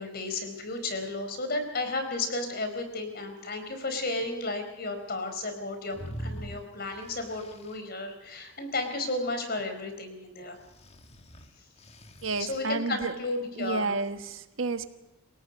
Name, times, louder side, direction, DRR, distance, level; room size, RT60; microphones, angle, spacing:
voice 1, 0.0-10.6 12.4-13.9, left 2 dB, 50° left, 7 dB, 4.4 m, -33 dB
sound 1, 5.9-7.8 10.6-12.6, right 1 dB, 30° left, 1.6 m, -43 dB
voice 2, 12.2-13.1 13.6-14.9, right 3 dB, 70° right, 9 dB, 1.4 m, -31 dB
29.5 x 17.5 x 5.2 m, 0.99 s
head